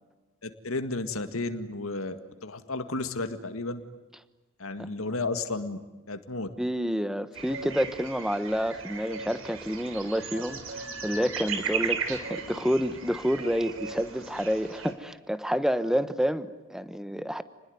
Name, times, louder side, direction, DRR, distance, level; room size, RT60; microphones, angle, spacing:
voice 1, 0.4-3.8 4.6-5.8 6.1-6.5, left 3 dB, 80° left, 9 dB, 2.0 m, -33 dB
voice 2, 6.6-17.4, equal, ahead, 13 dB, 1.2 m, -29 dB
sound 1, 7.3-14.9, right 6 dB, 70° right, 3.8 m, -36 dB
29.5 x 21.0 x 9.5 m, 1.1 s
head